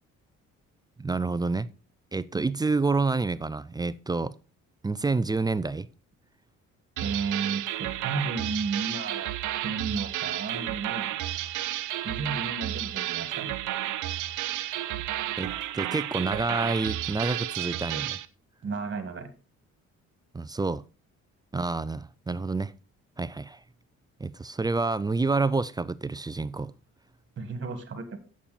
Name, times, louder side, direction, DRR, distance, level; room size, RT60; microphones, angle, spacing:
voice 1, 1.0-1.7 2.1-4.4 4.8-5.9 15.4-18.2 20.3-20.8 21.5-22.7 23.2-23.6 24.2-26.7, right 3 dB, 15° right, 0.3 m, -28 dB
voice 2, 7.0-9.3 9.6-11.2 12.0-13.5 18.6-19.3 27.4-28.2, right 4 dB, 40° right, 1.9 m, -33 dB
sound 1, 7.0-18.3, right 14 dB, 80° right, 0.7 m, -32 dB
8.5 x 7.3 x 4.2 m
cardioid pair, 90°, 30 cm